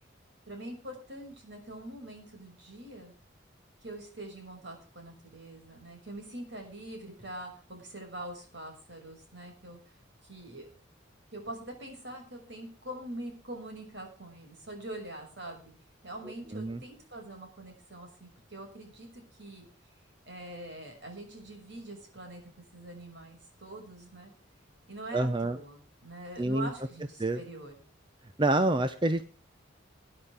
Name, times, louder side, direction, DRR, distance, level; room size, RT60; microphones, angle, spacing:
voice 1, 0.5-3.1 3.8-10.0 10.2-10.6 11.3-15.7 16.0-19.7 20.3-24.3 24.9-27.8, right 1 dB, 60° right, 3 dB, 6.1 m, -44 dB
voice 2, 25.1-25.6 26.4-26.7 27.2-27.4 28.4-29.2, right 2 dB, 25° right, 10 dB, 0.8 m, -27 dB
20.5 x 9.9 x 3.5 m, 0.38 s
head